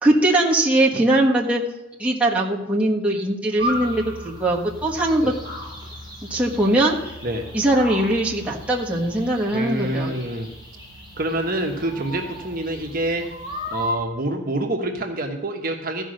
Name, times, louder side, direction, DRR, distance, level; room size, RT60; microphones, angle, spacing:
voice 1, 0.0-1.6 2.0-5.4 6.2-7.0 7.5-10.1, right 1 dB, 5° right, -5 dB, 1.3 m, -20 dB
sound 1, 3.6-13.9, left 1 dB, 20° left, 3.1 m, -35 dB
voice 2, 9.5-10.5 11.2-13.2 13.7-16.0, right 1 dB, 45° right, 2 dB, 1.2 m, -26 dB
14.5 x 5.5 x 6.4 m, 1.0 s
head